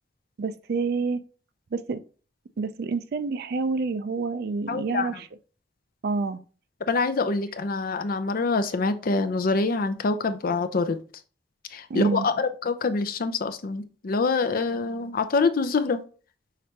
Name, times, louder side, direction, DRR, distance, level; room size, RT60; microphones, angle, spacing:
voice 1, 0.4-1.2 1.7-2.0 2.6-5.3 6.0-6.4 11.9-12.3, right 4 dB, 60° right, 0.4 m, -28 dB
voice 2, 4.7-5.2 6.9-11.0 11.7-16.0, left 4 dB, 55° left, 0.5 m, -25 dB
5.9 x 3.2 x 2.8 m
head